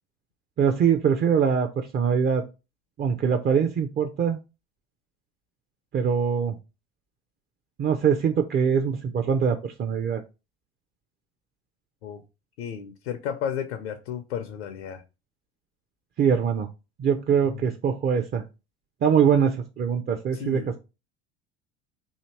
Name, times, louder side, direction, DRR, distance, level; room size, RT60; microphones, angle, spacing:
voice 1, 0.6-2.4 3.0-4.4 5.9-6.6 7.8-10.2 16.2-16.7 17.0-18.4 19.0-20.8, right 7 dB, 30° right, 5 dB, 0.5 m, -23 dB
voice 2, 12.6-15.0 17.4-17.6 20.3-20.7, left 8 dB, 80° left, 6 dB, 0.6 m, -33 dB
2.8 x 2.7 x 4.4 m, 0.29 s
hypercardioid pair, 70°, 32 cm